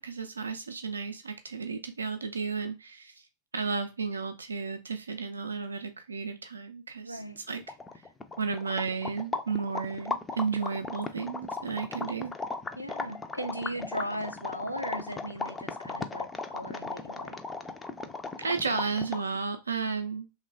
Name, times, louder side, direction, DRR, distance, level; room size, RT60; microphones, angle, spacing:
voice 1, 0.0-3.3 3.5-7.6 8.4-12.3 18.4-20.3, right 5 dB, 75° right, 0.4 m, -33 dB
voice 2, 7.0-7.4 12.8-17.4, equal, 90° left, 0.4 m, -37 dB
sound 1, 7.3-7.4 7.6-19.4, left 3 dB, 15° left, 0.3 m, -37 dB
3.2 x 2.1 x 2.5 m
figure-of-eight pair, 90°, 0 cm